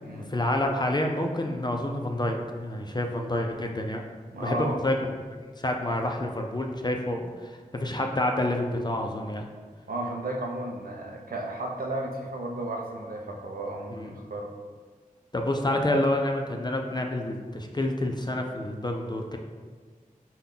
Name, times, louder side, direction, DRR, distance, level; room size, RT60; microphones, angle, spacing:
voice 1, 0.0-4.0 4.4-5.1 5.4-9.5 13.9-14.1 15.3-19.4, left 1 dB, 30° left, 2 dB, 0.4 m, -28 dB
voice 2, 4.3-4.8 9.9-14.5, right 2 dB, 85° right, 1 dB, 0.6 m, -34 dB
5.4 x 2.2 x 3.7 m, 1.5 s
wide cardioid pair, 65°, 15 cm